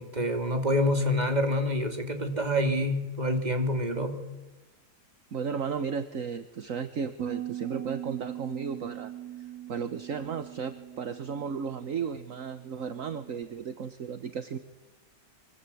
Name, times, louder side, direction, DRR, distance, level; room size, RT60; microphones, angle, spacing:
voice 1, 0.0-4.2, left 1 dB, 25° right, 5 dB, 3.1 m, -27 dB
voice 2, 5.3-9.1 9.4-14.6, right 6 dB, 55° right, 10 dB, 1.5 m, -34 dB
sound 1, 7.2-13.4, right 12 dB, 85° right, 2.0 m, -41 dB
25.5 x 24.0 x 8.5 m, 1.1 s
omnidirectional pair, 1.7 m